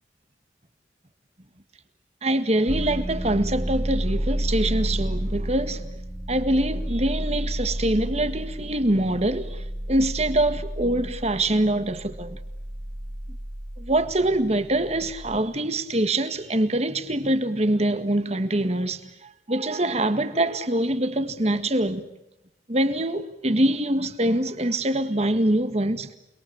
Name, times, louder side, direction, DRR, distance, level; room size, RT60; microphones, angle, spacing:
voice 1, 2.2-5.9 6.3-12.4 13.8-22.0 22.7-26.1, right 1 dB, 35° right, 1.8 m, -24 dB
sound 1, 2.7-15.4, equal, 5° right, 1.0 m, -31 dB
29.0 x 21.5 x 8.8 m
head